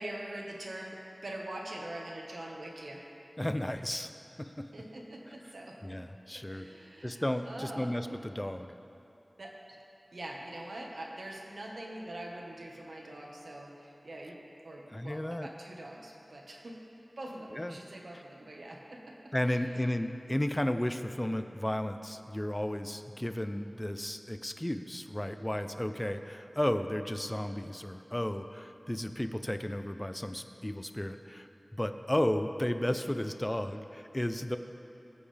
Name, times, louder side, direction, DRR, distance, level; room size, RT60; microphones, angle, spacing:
voice 1, 0.0-3.1 4.7-5.8 6.3-7.9 9.4-9.8 10.1-14.4 14.6-16.8 17.2-20.0, right 1 dB, 80° right, -1 dB, 1.4 m, -44 dB
voice 2, 3.4-4.1 4.4-4.7 5.8-6.7 7.0-8.7 14.9-15.5 17.5-17.8 19.3-31.5 31.7-34.6, left 1 dB, 20° left, 8 dB, 0.6 m, -33 dB
19.5 x 7.8 x 3.4 m, 2.9 s
wide cardioid pair, 45°, 0 cm